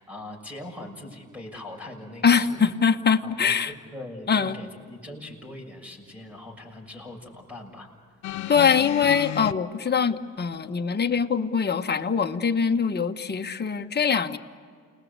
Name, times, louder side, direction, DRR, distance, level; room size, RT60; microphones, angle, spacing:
voice 1, 0.0-2.6 3.2-7.9, left 1 dB, 5° right, 2 dB, 6.8 m, -41 dB
voice 2, 2.2-3.7 4.3-4.5 8.5-14.4, left 6 dB, 35° left, 6 dB, 1.4 m, -23 dB
sound 1, 8.2-9.5 10.5-10.6, left 14 dB, 70° left, 0.6 m, -33 dB
29.5 x 20.5 x 8.3 m, 2.1 s
cardioid pair, 90°, 30 cm